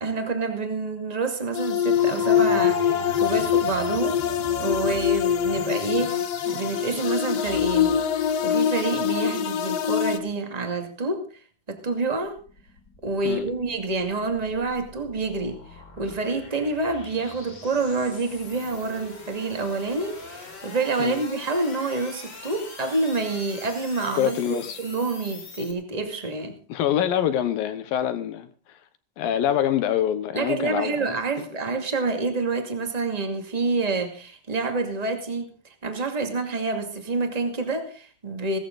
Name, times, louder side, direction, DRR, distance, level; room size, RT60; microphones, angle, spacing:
voice 1, 0.0-4.2 4.6-8.0 8.4-11.4 11.7-12.4 13.0-26.6 30.3-35.5 35.8-38.6, right 3 dB, 15° right, 1.4 m, -28 dB
sound 1, 1.5-10.2, left 9 dB, 90° left, 1.4 m, -24 dB
sound 2, 2.0-8.4, right 7 dB, 75° right, 3.4 m, -39 dB
sound 3, 11.8-25.7, left 3 dB, 30° left, 2.6 m, -44 dB
voice 2, 24.2-24.8 26.7-28.5 29.2-31.1, left 10 dB, 75° left, 2.5 m, -25 dB
17.5 x 14.0 x 3.9 m
omnidirectional pair, 4.5 m